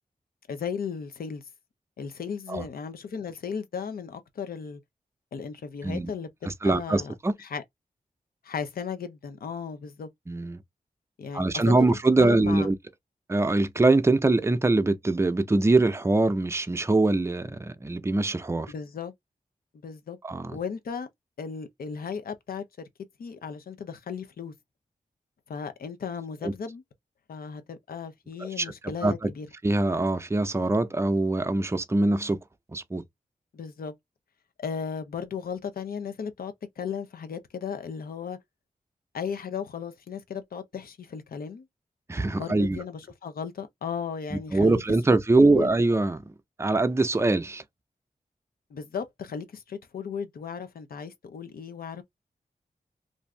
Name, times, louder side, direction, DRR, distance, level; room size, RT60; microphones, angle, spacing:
voice 1, 0.5-1.4 2.0-4.8 5.3-7.1 7.4-7.6 8.4-10.1 11.2-12.7 18.7-19.1 19.8-20.2 20.5-21.1 21.4-22.9 23.2-24.5 25.5-26.8 27.3-29.5 33.5-33.9 34.6-38.4 39.1-41.7 42.4-44.8 45.4-45.7 48.7-52.0, left 6 dB, 85° left, 0.6 m, -35 dB
voice 2, 6.4-7.3 10.3-10.6 11.3-12.8 13.3-18.7 20.2-20.6 26.4-26.5 28.4-28.7 29.0-29.3 29.6-32.4 32.7-33.0 42.1-42.8 44.3-46.2 46.6-47.6, right 2 dB, 20° right, 0.5 m, -23 dB
2.6 x 2.4 x 3.2 m
cardioid pair, 55°, 15 cm